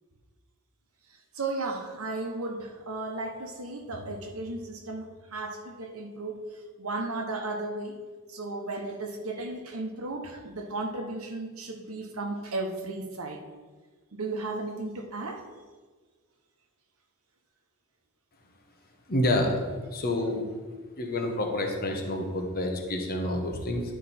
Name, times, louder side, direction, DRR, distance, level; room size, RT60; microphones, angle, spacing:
voice 1, 1.3-6.5 6.8-8.0 8.3-13.4 14.1-15.4, right 2 dB, 70° right, 3 dB, 1.1 m, -35 dB
voice 2, 19.1-19.6 19.9-20.4 21.0-23.8, left 1 dB, 45° left, 3 dB, 1.1 m, -28 dB
11.0 x 5.1 x 4.3 m, 1.4 s
head